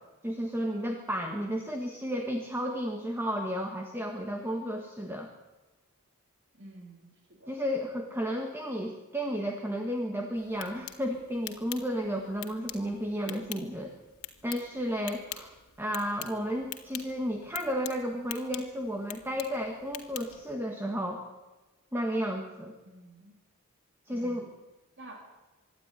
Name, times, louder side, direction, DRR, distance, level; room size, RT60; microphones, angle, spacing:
voice 1, 0.2-5.3 7.5-13.9 14.4-21.2 21.9-22.7 24.1-24.5, equal, 10° right, 2 dB, 1.7 m, -33 dB
voice 2, 6.5-7.6 22.9-23.3 24.1-24.5 25.0-25.3, right 2 dB, 55° right, 2 dB, 3.6 m, -50 dB
sound 1, 10.4-20.5, left 12 dB, 75° left, 2.2 m, -45 dB
25.5 x 12.0 x 10.0 m, 1.2 s
head